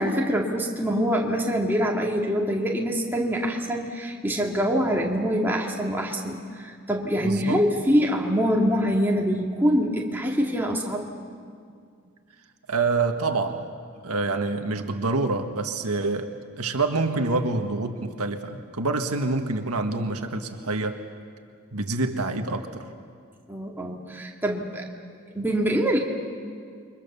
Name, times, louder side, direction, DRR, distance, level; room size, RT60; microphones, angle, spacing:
voice 1, 0.0-11.1 23.5-24.8 25.3-26.0, equal, 10° right, -1 dB, 2.4 m, -24 dB
voice 2, 7.2-7.6 12.7-13.7 14.0-21.0 21.7-22.8, right 3 dB, 90° right, 5 dB, 1.7 m, -27 dB
29.0 x 24.0 x 7.0 m, 2.2 s
head